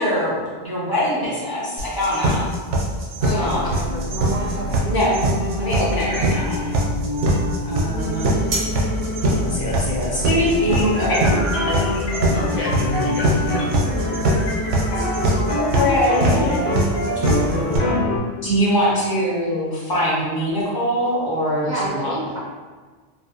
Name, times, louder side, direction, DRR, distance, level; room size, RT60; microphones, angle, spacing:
voice 1, 0.0-2.4 3.3-3.7 4.8-5.2 5.6-6.7 7.6-8.3 9.5-11.2 11.6-11.9 15.3-15.4 15.7-16.7 18.4-22.1, equal, 25° left, -7 dB, 0.5 m, -22 dB
sound 1, 1.8-17.8, right 1 dB, 75° right, 0.9 m, -21 dB
voice 2, 3.2-4.8 13.2-13.4 21.6-22.4, right 1 dB, 55° right, -8 dB, 0.6 m, -30 dB
sound 2, 3.4-15.4, left 1 dB, 45° left, 0.9 m, -28 dB
sound 3, 10.7-18.2, left 1 dB, 70° left, 1.0 m, -26 dB
voice 3, 12.3-13.7 15.7-16.7 17.5-17.9, left 2 dB, 90° left, -4 dB, 1.0 m, -29 dB
2.5 x 2.2 x 2.7 m, 1.4 s
omnidirectional pair, 1.2 m